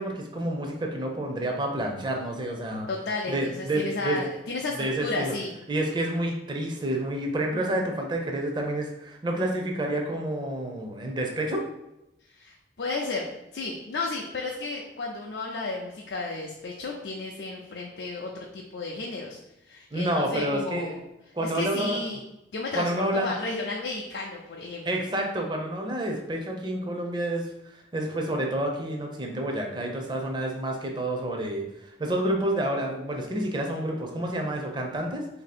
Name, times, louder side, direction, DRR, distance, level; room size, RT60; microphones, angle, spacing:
voice 1, 0.0-2.9 3.3-4.2 4.8-5.3 5.7-11.6 19.9-21.0 21.3-22.0 22.7-23.3 24.8-35.3, right 1 dB, 25° right, 1 dB, 0.5 m, -29 dB
voice 2, 2.9-5.5 12.3-13.3 13.5-19.4 19.7-21.0 21.4-22.2 22.5-24.9, left 3 dB, 70° left, -1 dB, 0.4 m, -33 dB
2.8 x 2.7 x 4.1 m, 0.89 s
head